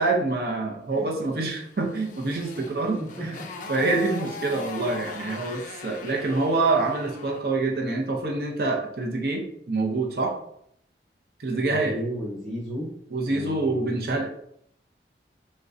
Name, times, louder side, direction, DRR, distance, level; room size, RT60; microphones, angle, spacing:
voice 1, 0.0-3.4 3.7-10.3 11.4-11.9 13.1-14.3, right 3 dB, 55° right, 1 dB, 0.6 m, -26 dB
Motorcycle, 1.5-7.5, left 4 dB, 45° left, 0.3 m, -40 dB
voice 2, 3.0-3.3 11.7-12.9 13.2-14.1, equal, ahead, -6 dB, 1.0 m, -33 dB
3.6 x 2.1 x 2.5 m, 0.72 s
head